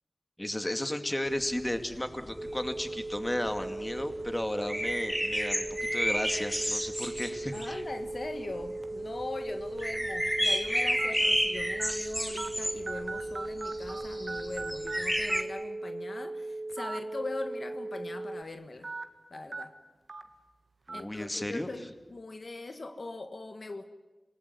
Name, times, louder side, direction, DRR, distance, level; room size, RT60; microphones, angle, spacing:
voice 1, 0.4-5.7 5.9-7.8 20.9-21.7, left 1 dB, 20° left, 7 dB, 2.4 m, -34 dB
sound 1, 1.4-8.7 9.0-9.2 9.5-15.4, equal, 5° right, 2.3 m, -32 dB
sound 2, 2.4-18.4, right 2 dB, 20° right, 1.4 m, -38 dB
voice 2, 7.5-18.9 19.3-19.7 20.9-23.9, left 2 dB, 70° left, 7 dB, 1.7 m, -41 dB
sound 3, 8.8-9.1 9.8-9.9 11.0-11.1 11.8-11.9 12.4-12.5 12.9-14.0 14.3-15.0 15.3-15.4 16.7-17.0 17.4-17.5 18.8-19.0 19.5-19.6 20.1-20.2 20.9-21.0, right 3 dB, 70° right, 1.7 m, -38 dB
27.5 x 19.0 x 9.6 m, 1.2 s
wide cardioid pair, 60°, 0 cm